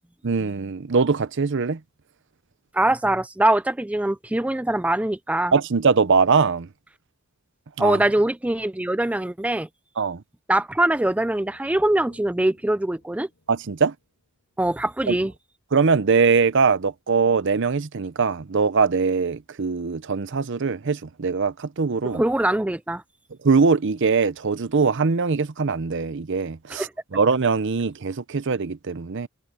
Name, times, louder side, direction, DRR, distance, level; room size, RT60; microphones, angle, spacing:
voice 1, 0.2-1.8 5.5-6.7 7.8-8.0 10.0-10.2 13.5-13.9 15.1-15.2 15.7-22.2 23.4-29.3, right 5 dB, 60° right, 0.7 m, -22 dB
voice 2, 2.7-5.5 7.8-9.7 10.5-13.3 14.6-15.3 22.1-23.0 26.7-26.9, right 1 dB, 5° right, 0.4 m, -22 dB
sound 1, 11.1-14.9 15.2-15.3, left 2 dB, 70° left, 3.7 m, -57 dB
head